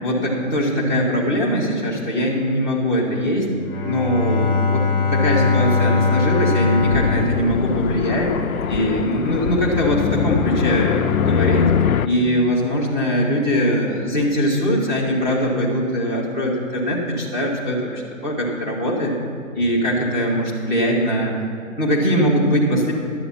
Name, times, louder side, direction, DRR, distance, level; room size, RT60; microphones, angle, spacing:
voice 1, 0.0-3.5 3.9-4.8 5.1-8.3 8.7-11.7 12.0-19.1 19.5-21.3 21.8-22.9, equal, 10° right, -8 dB, 1.0 m, -21 dB
Bowed string instrument, 3.5-8.4, left 4 dB, 15° left, 0.9 m, -21 dB
sound 1, 6.8-12.1, left 8 dB, 80° left, 0.6 m, -22 dB
11.5 x 7.8 x 5.7 m, 2.4 s
hypercardioid pair, 155°, 41 cm